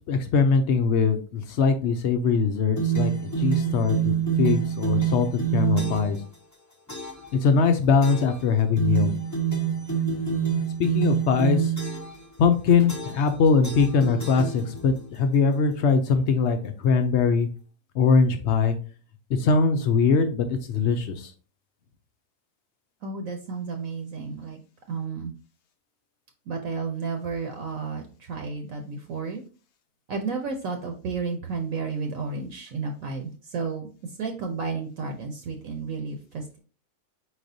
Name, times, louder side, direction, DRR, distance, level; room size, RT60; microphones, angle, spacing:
voice 1, 0.0-3.1 3.4-6.2 7.4-9.1 10.8-11.7 12.4-17.5 17.9-18.8 19.3-21.3, left 5 dB, 65° left, 7 dB, 0.7 m, -22 dB
sound 1, 2.8-6.2 6.9-7.3 8.0-8.4 8.8-12.2 12.9-13.3 13.6-15.0, right 8 dB, 20° left, 0.4 m, -27 dB
voice 2, 23.0-24.6 24.9-25.3 26.5-29.4 30.1-36.6, right 4 dB, 65° right, 4 dB, 1.0 m, -32 dB
4.7 x 4.1 x 2.6 m, 0.37 s
omnidirectional pair, 1.6 m